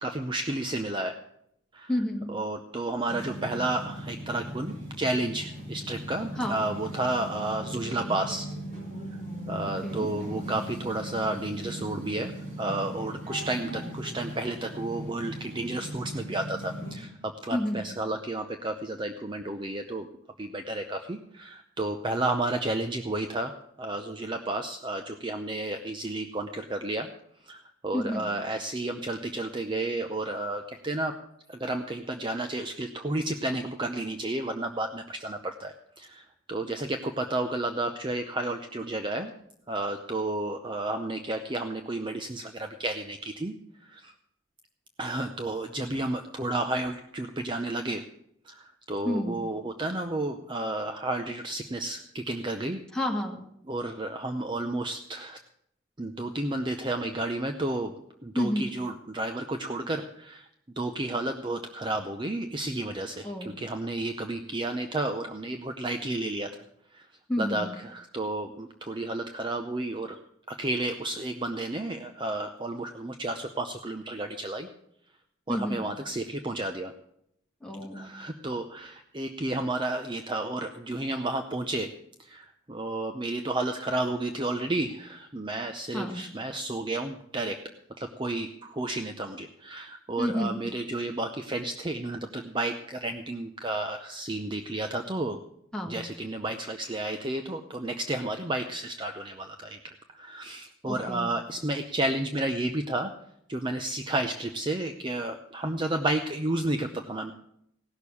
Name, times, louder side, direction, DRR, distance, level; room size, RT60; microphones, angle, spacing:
voice 1, 0.0-1.2 1.7-1.9 2.3-8.5 9.5-12.3 12.6-20.1 20.4-27.1 27.4-31.1 31.5-39.3 39.7-43.5 43.8-44.1 45.0-48.0 48.5-52.8 53.6-55.4 56.0-57.9 58.2-60.5 60.8-66.5 66.9-67.1 67.4-70.2 70.5-74.7 75.5-76.9 77.9-81.9 82.2-87.6 88.0-95.4 95.9-103.1 103.5-107.3, right 2 dB, 25° right, 6 dB, 0.6 m, -32 dB
voice 2, 1.9-2.3 6.4-6.6 9.6-10.1 17.5-17.9 27.9-28.3 49.1-49.4 52.9-53.4 58.4-58.7 63.2-63.5 67.3-67.7 75.5-75.9 77.6-78.1 85.9-86.2 90.2-90.6 95.7-96.0 100.8-101.3, left 1 dB, 5° left, -1 dB, 1.8 m, -30 dB
sound 1, 3.1-17.0, right 1 dB, 50° right, 6.0 m, -39 dB
16.5 x 6.6 x 8.4 m, 0.73 s
head